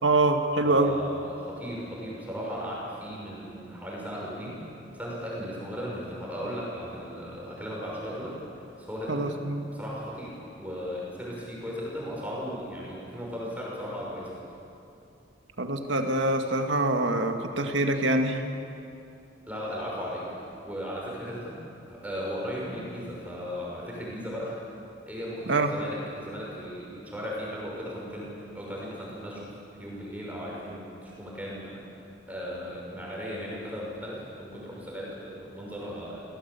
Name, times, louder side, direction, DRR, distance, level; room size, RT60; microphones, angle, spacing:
voice 1, 0.0-0.9 9.1-9.6 15.6-18.4 25.5-25.7, right 2 dB, 80° right, 5 dB, 2.0 m, -25 dB
voice 2, 0.6-4.6 4.9-8.4 8.8-9.3 9.7-14.4 19.5-20.3 20.6-24.6 25.1-29.5 29.8-32.0 32.3-36.2, equal, 10° right, -4 dB, 5.9 m, -36 dB
25.5 x 17.5 x 8.4 m, 2.7 s
head